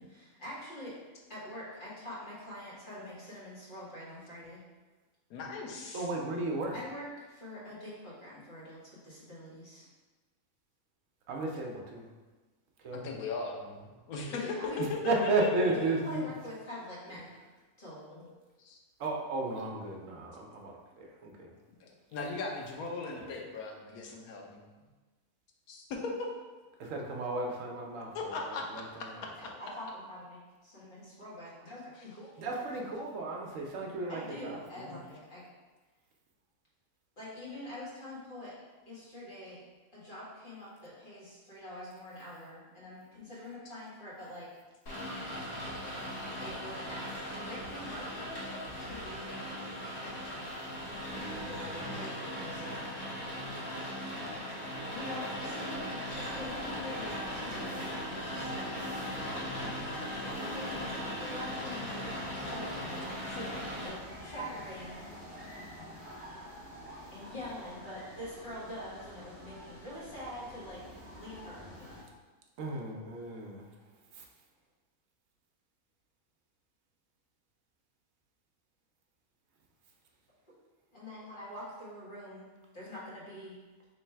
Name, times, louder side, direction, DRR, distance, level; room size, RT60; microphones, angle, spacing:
voice 1, 0.1-1.0 1.3-4.6 6.7-9.9 14.3-14.9 15.8-17.3 17.8-18.2 29.4-32.6 34.1-35.4 37.2-38.6 38.9-39.6 39.9-44.5 46.4-49.5 51.1-52.8 54.9-58.7 60.2-63.0 63.2-63.5 63.8-65.0 67.1-70.8 71.2-72.0 80.9-82.5 82.7-83.6, left 1 dB, 35° left, -8 dB, 1.5 m, -45 dB
voice 2, 5.3-6.1 13.0-14.5 14.8-16.1 18.2-18.3 18.7-18.8 19.9-20.0 21.8-24.7 25.7-26.3 28.1-28.7 34.8-35.0, left 3 dB, 85° left, 0 dB, 1.2 m, -38 dB
voice 3, 5.9-6.7 11.3-12.0 12.8-13.1 14.8-16.2 19.0-21.5 23.1-23.3 26.8-29.3 32.4-34.6 51.2-51.8 72.6-73.7 74.1-74.2, right 2 dB, 65° right, 0 dB, 1.0 m, -34 dB
Rain, 44.9-63.9, equal, 60° left, 1.4 m, -38 dB
sound 1, 56.1-72.0, equal, ahead, 1.3 m, -48 dB
3.2 x 3.1 x 4.4 m, 1.2 s
omnidirectional pair, 1.5 m